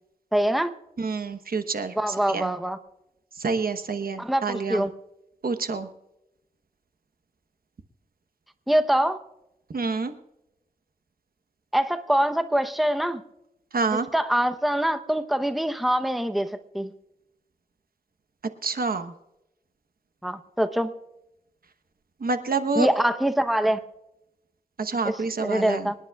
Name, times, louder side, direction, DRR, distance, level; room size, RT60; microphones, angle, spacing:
voice 1, 0.3-0.7 2.0-2.8 4.2-4.9 8.7-9.2 11.7-13.2 13.9-16.9 20.2-20.9 22.7-23.8 25.0-26.0, right 1 dB, ahead, 8 dB, 0.8 m, -24 dB
voice 2, 1.0-2.5 3.4-4.9 5.4-5.9 9.7-10.1 13.7-14.1 18.6-19.1 22.2-22.9 24.8-25.9, right 4 dB, 75° right, 8 dB, 1.0 m, -27 dB
26.5 x 10.5 x 2.3 m, 0.89 s
wide cardioid pair, 75°, 15 cm